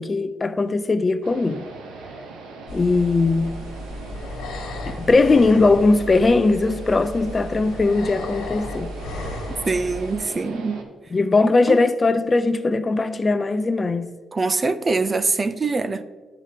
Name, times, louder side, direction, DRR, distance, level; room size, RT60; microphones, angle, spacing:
voice 1, 0.0-1.7 2.7-3.6 4.9-8.9 11.1-14.1, left 3 dB, 30° left, 0.4 m, -19 dB
sound 1, 1.2-10.8, right 3 dB, 90° right, 0.8 m, -40 dB
sound 2, 2.7-10.1, left 1 dB, 90° left, 1.5 m, -34 dB
voice 2, 9.6-10.8 11.4-11.8 14.3-16.0, right 3 dB, 30° right, 0.4 m, -23 dB
12.0 x 4.9 x 2.8 m
cardioid pair, 90°, 0 cm